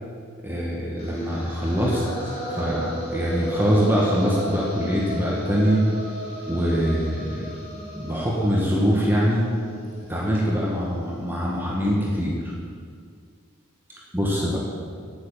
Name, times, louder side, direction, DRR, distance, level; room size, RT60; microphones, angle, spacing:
voice 1, 0.4-5.8 6.5-7.5 7.9-9.4 10.1-12.5 14.1-14.6, equal, 10° right, -4 dB, 1.7 m, -23 dB
mysterious sound, 1.0-11.1, equal, 30° left, 2.7 m, -35 dB
9.1 x 7.8 x 9.2 m, 2.2 s
head